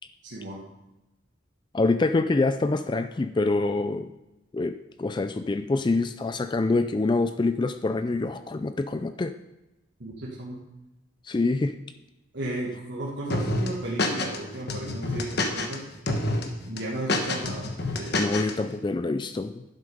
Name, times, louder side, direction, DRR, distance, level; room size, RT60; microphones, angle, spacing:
voice 1, 0.2-0.6 10.0-10.6 12.3-15.9 16.6-18.2, right 1 dB, 55° right, -5 dB, 1.5 m, -34 dB
voice 2, 1.7-4.1 4.5-9.3 11.2-11.7 18.2-19.6, left 3 dB, 20° left, 11 dB, 0.3 m, -26 dB
sound 1, 13.3-14.4 14.7-15.8 16.1-16.5 16.8-18.5, left 2 dB, 50° left, 1.2 m, -27 dB
11.0 x 8.2 x 5.4 m, 0.99 s
head